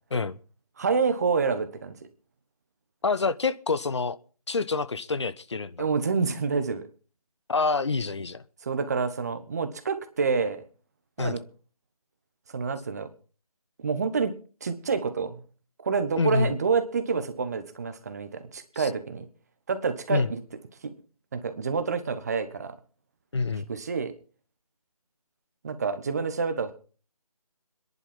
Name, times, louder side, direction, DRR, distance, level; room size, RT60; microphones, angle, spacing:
voice 1, 0.8-2.0 5.8-6.9 8.6-10.6 11.2-11.4 12.5-13.1 13.8-14.3 14.6-15.4 15.8-19.3 19.7-20.4 20.8-20.9 21.3-22.7 23.7-24.1 25.6-26.7, right 5 dB, 25° right, 1.3 m, -28 dB
voice 2, 3.0-4.2 4.5-5.9 7.5-8.4 11.2-11.4 16.2-16.6 18.7-18.9 20.1-20.3 23.3-23.7, left 4 dB, 50° left, 0.9 m, -27 dB
25.5 x 11.0 x 3.7 m
figure-of-eight pair, 160°, 19 cm